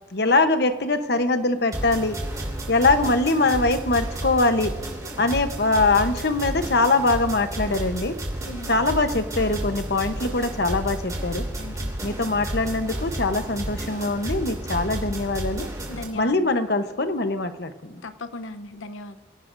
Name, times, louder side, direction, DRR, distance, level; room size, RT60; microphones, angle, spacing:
voice 1, 0.1-2.2 2.7-4.7 5.2-8.1 8.7-11.4 12.0-15.7 16.1-18.0, left 2 dB, 55° left, 1.0 m, -22 dB
sound 1, 1.7-16.0, right 1 dB, 20° right, 3.1 m, -32 dB
voice 2, 11.6-12.0 15.9-16.5 18.0-19.2, left 2 dB, 85° left, 0.8 m, -37 dB
25.0 x 16.5 x 2.6 m
head